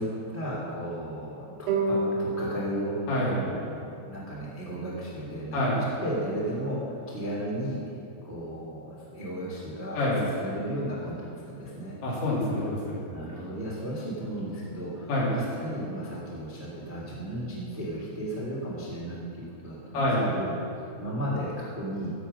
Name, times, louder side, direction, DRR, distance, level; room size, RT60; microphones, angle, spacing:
voice 1, 0.0-7.8 8.2-12.0 13.1-20.5 21.0-22.1, right 1 dB, 5° right, -6 dB, 1.6 m, -35 dB
sound 1, 1.7-4.9, right 2 dB, 80° right, 4.3 m, -32 dB
voice 2, 3.1-3.4 5.5-5.8 10.0-10.2 12.0-13.0 15.1-15.3 19.9-20.2, left 1 dB, 80° left, -6 dB, 5.1 m, -26 dB
15.0 x 7.6 x 5.7 m, 2.5 s
omnidirectional pair, 5.3 m